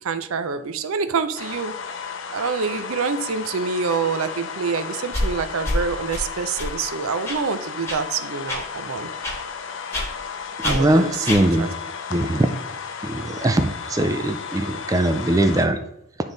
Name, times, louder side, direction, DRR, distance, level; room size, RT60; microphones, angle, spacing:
voice 1, 0.0-1.7 2.3-9.1 10.6-11.3 11.6-11.7, right 5 dB, 85° right, 12 dB, 0.5 m, -26 dB
sound 1, 1.4-15.7, left 6 dB, 60° left, 0.6 m, -34 dB
sound 2, 5.1-5.3 5.6-5.8 6.1-6.2 6.6-6.7 7.2-7.4 7.9-8.0 8.5-8.6 9.2-9.4 9.9-10.1 10.6-10.8 11.2-11.4, left 1 dB, 15° left, 1.4 m, -25 dB
voice 2, 10.6-11.7 12.1-12.5 13.0-15.8, right 1 dB, 15° right, 8 dB, 0.3 m, -21 dB
9.1 x 3.5 x 3.9 m, 0.81 s
head